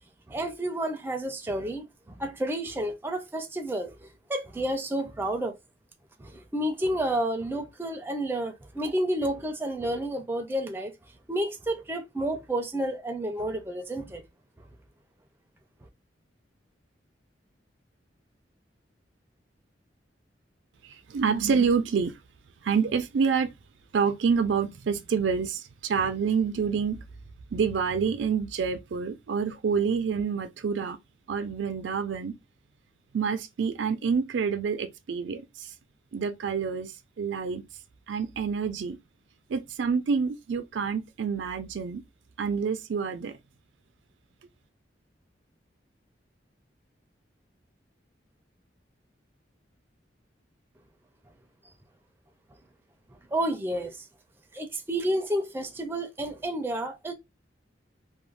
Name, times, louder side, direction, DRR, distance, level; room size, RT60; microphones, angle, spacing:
voice 1, 0.3-5.6 6.2-10.9 11.3-14.2 53.3-54.1 54.5-57.1, right 1 dB, 10° right, 0.4 m, -30 dB
voice 2, 21.1-22.1 22.6-23.5 23.9-27.0 27.5-31.0 31.3-32.3 33.1-35.7 36.1-36.9 37.2-37.6 38.1-39.0 39.5-42.0 42.4-43.3, right 6 dB, 85° right, 0.4 m, -27 dB
2.4 x 2.1 x 3.1 m
head